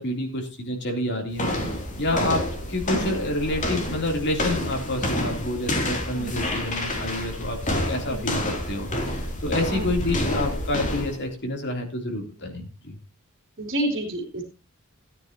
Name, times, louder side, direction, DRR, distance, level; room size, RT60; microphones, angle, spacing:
voice 1, 0.0-1.5 2.0-13.0, left 1 dB, 55° left, 2 dB, 3.5 m, -28 dB
sound 1, 1.3-11.2, left 1 dB, 35° left, 3.1 m, -28 dB
voice 2, 6.1-6.6 8.0-8.3 9.7-10.0 13.6-14.4, right 1 dB, 50° right, 3 dB, 3.1 m, -30 dB
17.0 x 9.7 x 3.0 m, 0.30 s
head